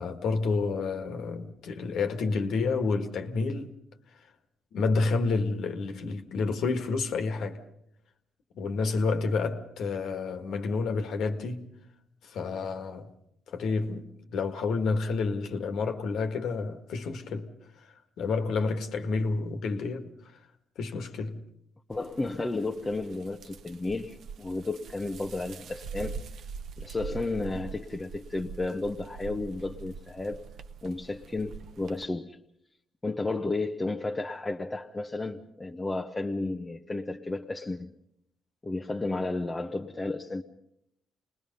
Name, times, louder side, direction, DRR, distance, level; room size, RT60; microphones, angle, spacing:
voice 1, 0.0-3.7 4.7-7.6 8.5-11.7 12.2-13.1 13.5-17.5 17.8-20.1 20.8-21.4, left 4 dB, 75° left, 1.8 m, -29 dB
voice 2, 21.9-26.2 26.8-30.4 30.8-32.4 33.0-37.9 38.6-40.4, left 2 dB, 20° left, 0.9 m, -33 dB
sound 1, 21.9-32.0, right 6 dB, 65° right, 0.8 m, -44 dB
28.0 x 20.0 x 5.4 m
cardioid pair, 90°, 0 cm